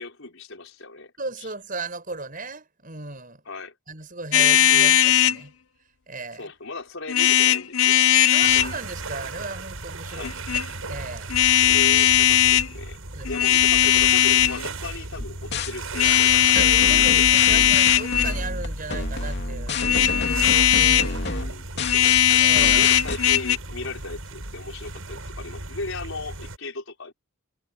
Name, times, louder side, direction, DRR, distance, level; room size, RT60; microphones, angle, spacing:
voice 1, 0.0-1.1 1.4-1.5 3.5-3.7 4.4-4.9 6.4-8.0 10.0-10.4 11.7-13.0 13.3-17.2 21.3-22.2 22.7-27.1, left 3 dB, 70° left, 4.9 m, -37 dB
voice 2, 1.2-3.4 3.9-5.5 6.1-6.5 8.3-10.3 10.9-11.3 13.1-13.3 16.1-16.2 16.5-21.4 22.4-22.9, right 3 dB, 40° right, 6.9 m, -36 dB
sound 1, 4.3-5.4 7.1-8.7 10.2-10.6 11.3-12.7 13.2-14.6 15.9-18.4 19.7-21.1 21.8-23.6, left 11 dB, 85° left, 0.9 m, -18 dB
sound 2, 8.4-26.6, right 2 dB, 80° right, 6.6 m, -36 dB
sound 3, 15.2-15.7 16.6-23.2, left 3 dB, 55° left, 2.8 m, -29 dB
head